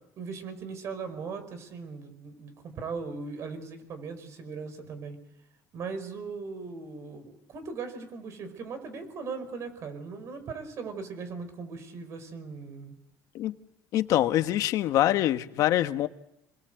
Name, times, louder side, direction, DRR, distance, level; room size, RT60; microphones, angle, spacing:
voice 1, 0.0-5.2 5.7-13.0, right 5 dB, 45° right, 5.1 m, -39 dB
voice 2, 13.9-16.1, left 13 dB, 60° left, 1.3 m, -24 dB
28.5 x 21.0 x 8.0 m
cardioid pair, 145°, 7 cm